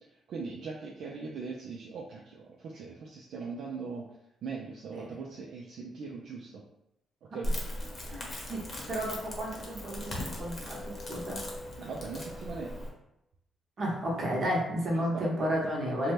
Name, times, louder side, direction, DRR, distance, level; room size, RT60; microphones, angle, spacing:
voice 1, 0.3-4.1 4.4-6.6 7.3-7.5 11.8-12.9 15.1-15.3 16.0-16.1, right 4 dB, 70° right, -2 dB, 0.3 m, -40 dB
Crackle, 7.4-12.9, left 1 dB, 40° left, 0.8 m, -38 dB
voice 2, 8.1-11.4 13.8-16.1, equal, 50° right, -3 dB, 0.9 m, -32 dB
2.7 x 2.2 x 3.1 m, 0.84 s
cardioid pair, 90°, 0 cm